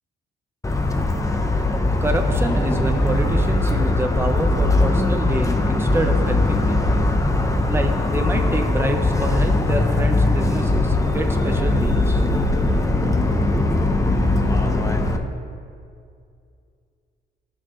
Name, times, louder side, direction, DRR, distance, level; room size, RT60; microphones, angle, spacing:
Motor vehicle (road) / Siren, 0.6-15.2, left 2 dB, 15° left, 0.8 m, -20 dB
voice 1, 2.0-7.1 7.7-12.2, right 1 dB, 10° right, 4 dB, 0.9 m, -27 dB
sound 1, 10.6-15.1, equal, 70° left, 1.5 m, -28 dB
14.5 x 6.3 x 3.1 m, 2.3 s
cardioid pair, 90°, 20 cm